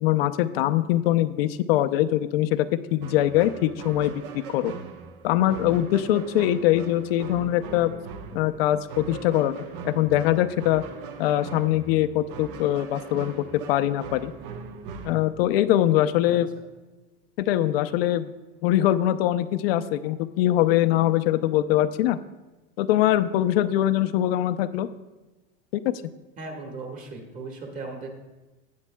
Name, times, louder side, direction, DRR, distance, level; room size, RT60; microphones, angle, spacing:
voice 1, 0.0-4.7 5.2-7.9 8.3-10.8 11.2-14.3 15.0-16.5 17.4-18.3 18.6-22.2 22.8-24.9 25.7-26.0, left 13 dB, 90° left, 12 dB, 0.6 m, -23 dB
sound 1, 3.0-15.1, right 6 dB, 65° right, 1.0 m, -40 dB
voice 2, 26.4-28.1, right 3 dB, 30° right, 2 dB, 1.5 m, -37 dB
18.0 x 7.3 x 2.2 m, 1.1 s
supercardioid pair, 165°, 29 cm